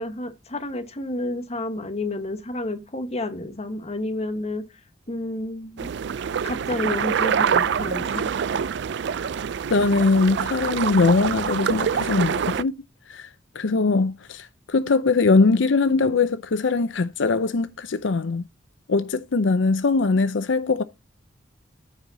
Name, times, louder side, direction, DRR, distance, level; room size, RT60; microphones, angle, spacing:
voice 1, 0.0-4.6 5.1-5.9 6.4-8.3, left 1 dB, 35° left, 1.3 m, -30 dB
sound 1, 5.8-12.6, right 7 dB, 65° right, 0.4 m, -25 dB
voice 2, 9.7-12.7 13.1-13.3 13.5-18.4 18.9-20.8, left 3 dB, 85° left, 0.6 m, -21 dB
14.5 x 5.0 x 2.7 m
head